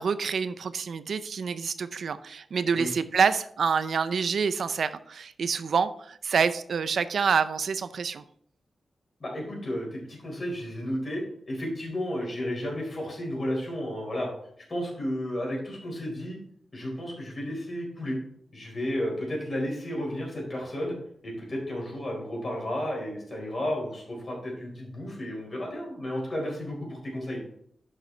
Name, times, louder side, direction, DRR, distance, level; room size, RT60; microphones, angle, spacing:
voice 1, 0.0-8.2, right 6 dB, 70° right, 12 dB, 0.5 m, -27 dB
voice 2, 9.2-14.3 14.7-16.4 16.7-18.2 18.5-21.0 21.2-27.4, equal, 30° left, -1 dB, 4.3 m, -32 dB
11.0 x 6.5 x 3.2 m, 0.66 s
wide cardioid pair, 160°, 0 cm